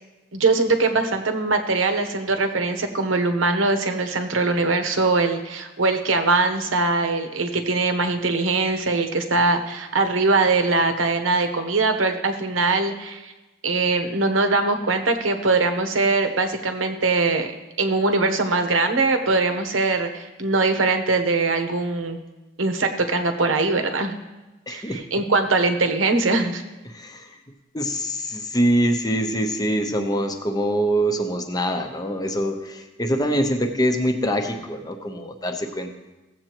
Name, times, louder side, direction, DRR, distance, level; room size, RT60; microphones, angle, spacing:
voice 1, 0.3-13.3 13.6-17.5 17.8-22.2 22.6-24.1 24.7-26.6, right 3 dB, 85° right, 6 dB, 1.0 m, -22 dB
voice 2, 24.7-25.0 26.9-27.4 27.7-35.9, equal, 20° left, 5 dB, 0.8 m, -24 dB
15.5 x 7.8 x 3.0 m, 1.1 s
head